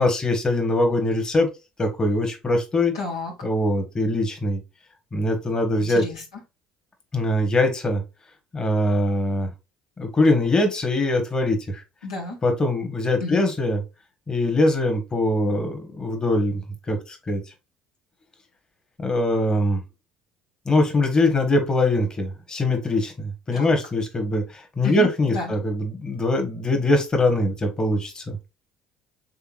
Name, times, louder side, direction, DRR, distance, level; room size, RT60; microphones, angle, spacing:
voice 1, 0.0-1.5 1.8-2.9 3.4-4.6 5.1-6.0 7.1-8.0 8.5-9.5 10.0-11.8 12.4-13.8 14.3-16.6 16.9-17.4 19.0-19.8 20.6-28.4, left 1 dB, 25° left, 5 dB, 1.5 m, -22 dB
voice 2, 2.9-3.3 5.8-6.2 12.0-12.4 13.2-13.4 23.5-23.7 24.8-25.5, left 3 dB, 85° left, -1 dB, 1.4 m, -31 dB
5.7 x 3.5 x 2.4 m, 0.26 s
hypercardioid pair, 60°, 3 cm